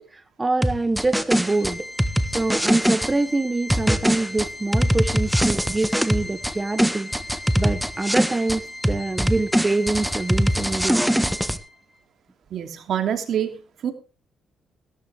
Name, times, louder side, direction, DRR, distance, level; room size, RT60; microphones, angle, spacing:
voice 1, 0.0-1.9 2.2-7.1 7.6-11.0, right 2 dB, 20° right, 11 dB, 1.0 m, -25 dB
sound 1, 0.6-3.1 3.7-6.5 6.8-8.6 8.8-11.6, equal, ahead, 1.3 m, -22 dB
Organ, 1.4-12.0, left 1 dB, 15° left, 3.4 m, -39 dB
voice 2, 12.5-13.9, right 9 dB, 65° right, 6 dB, 2.9 m, -26 dB
16.5 x 13.5 x 3.5 m, 0.33 s
cardioid pair, 90°, 0 cm